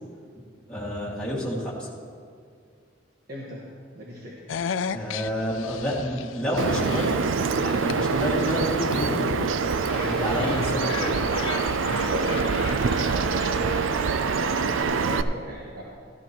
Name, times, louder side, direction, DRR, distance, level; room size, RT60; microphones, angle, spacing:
voice 1, 0.7-1.9 4.9-7.3 7.6-9.3 10.0-11.2, equal, 5° left, -7 dB, 2.1 m, -29 dB
voice 2, 3.3-3.7 3.9-4.4 12.0-15.8, equal, 50° right, -5 dB, 1.5 m, -39 dB
sound 1, 4.5-12.0, left 6 dB, 85° left, 0.4 m, -35 dB
Bird vocalization bird call bird song, 6.6-15.2, right 5 dB, 85° right, 0.5 m, -25 dB
Gull seagull, 9.8-14.8, left 3 dB, 25° left, 1.2 m, -37 dB
14.0 x 13.5 x 3.0 m, 2.2 s
head